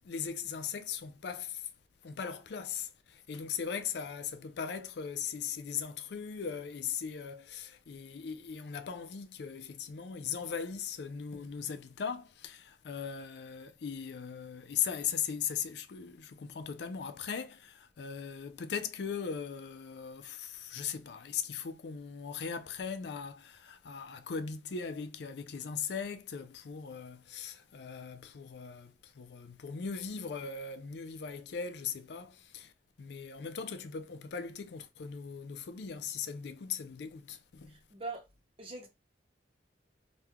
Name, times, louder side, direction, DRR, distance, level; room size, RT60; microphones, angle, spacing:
voice 1, 0.0-1.7 2.0-32.7 33.0-37.7, left 7 dB, 65° left, 0.4 m, -39 dB
voice 2, 37.7-38.2 38.6-38.9, right 3 dB, 30° right, 0.8 m, -42 dB
3.1 x 2.2 x 3.4 m
head